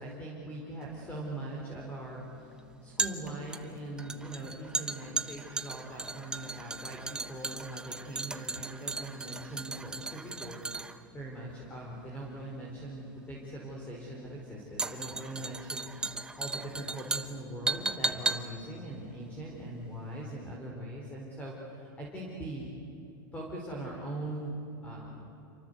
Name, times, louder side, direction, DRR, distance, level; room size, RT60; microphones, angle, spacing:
voice 1, 0.0-2.5 2.8-15.9 16.4-22.7 23.3-24.5 24.8-25.3, right 1 dB, 10° left, -2 dB, 4.6 m, -41 dB
sound 1, 0.8-20.1 20.4-20.5, right 3 dB, 5° right, 0.9 m, -37 dB
28.0 x 24.5 x 8.3 m, 2.9 s
supercardioid pair, 150°, 11 cm